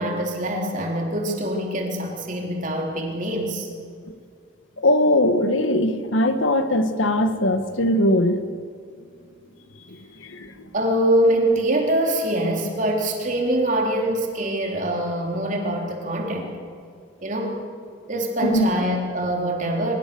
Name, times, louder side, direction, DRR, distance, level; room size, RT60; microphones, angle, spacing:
voice 1, 0.0-3.7 9.0-9.2 10.7-16.5 17.2-17.6 18.1-19.9, right 1 dB, 40° right, 1 dB, 3.7 m, -24 dB
voice 2, 4.8-8.4 9.9-10.6 18.4-18.7, left 1 dB, 80° left, 9 dB, 1.6 m, -21 dB
23.5 x 21.5 x 7.0 m, 2.3 s
head